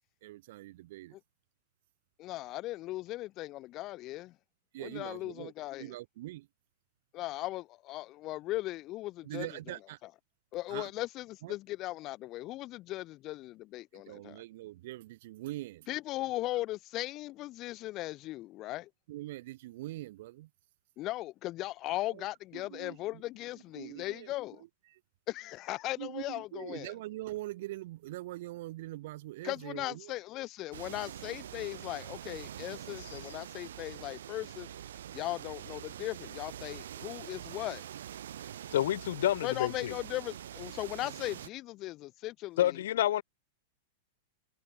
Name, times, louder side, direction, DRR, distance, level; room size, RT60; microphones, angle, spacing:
voice 1, 0.2-1.2 4.7-5.5 5.8-6.5 9.2-10.0 10.7-10.9 11.4-11.5 13.9-15.9 19.1-20.5 22.1-22.3 22.5-23.2 23.8-24.3 24.9-25.0 26.0-30.1, right 17 dB, 60° right, 1.3 m, -43 dB
voice 2, 2.2-4.3 4.8-5.9 7.1-9.5 10.5-14.4 15.9-18.9 21.0-24.6 25.3-26.9 29.4-34.7 35.1-37.8 39.4-42.8, left 17 dB, 35° left, 1.2 m, -38 dB
sound 1, 30.7-41.5, right 10 dB, 85° right, 1.1 m, -45 dB
voice 3, 38.7-39.9 42.6-43.2, left 12 dB, 75° left, 0.7 m, -29 dB
supercardioid pair, 150°, 0 cm